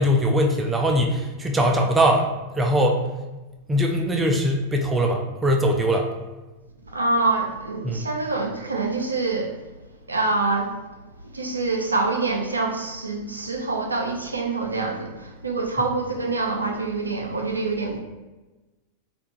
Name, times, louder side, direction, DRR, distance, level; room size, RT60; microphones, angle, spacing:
voice 1, 0.0-3.0 3.7-6.1 7.8-8.1, equal, 10° right, 2 dB, 0.3 m, -21 dB
voice 2, 6.8-9.6 10.1-10.8 11.3-18.0, right 3 dB, 85° right, 2 dB, 0.3 m, -25 dB
2.4 x 2.2 x 2.9 m, 1.1 s
figure-of-eight pair, 95°, 0 cm